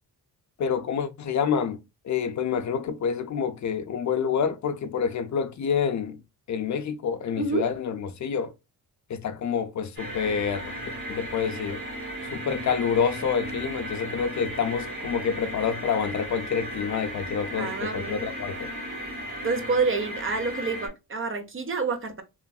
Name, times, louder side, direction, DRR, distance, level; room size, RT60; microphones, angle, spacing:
voice 1, 0.6-1.8 2.0-6.2 6.5-8.5 9.1-10.7 11.1-11.8 12.3-18.7, left 7 dB, 50° left, 0.5 m, -27 dB
sound 1, 10.0-20.9, equal, 60° right, 1.8 m, -36 dB
voice 2, 17.5-18.3 19.4-22.2, right 4 dB, 35° right, 0.6 m, -28 dB
3.0 x 2.5 x 2.2 m
cardioid pair, 80°, 37 cm